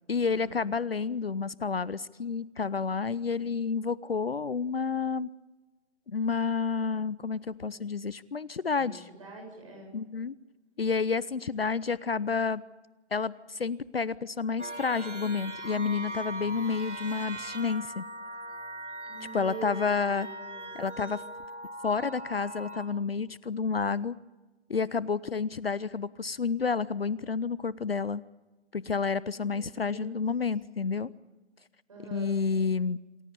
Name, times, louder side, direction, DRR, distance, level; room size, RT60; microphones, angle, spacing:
voice 1, 0.1-5.3 6.1-9.1 9.9-10.3 10.8-12.6 13.1-18.0 19.3-20.3 20.7-21.2 21.8-24.1 24.7-28.2 28.7-31.1 32.1-33.0, left 5 dB, 55° left, 19 dB, 0.7 m, -30 dB
voice 2, 8.6-9.9 19.0-20.7 29.3-30.2 31.9-32.3, right 3 dB, 30° right, 0 dB, 7.7 m, -45 dB
sound 1, 14.6-22.9, right 1 dB, 90° right, 2.8 m, -40 dB
27.5 x 16.0 x 8.4 m, 1.2 s
hypercardioid pair, 180°, 34 cm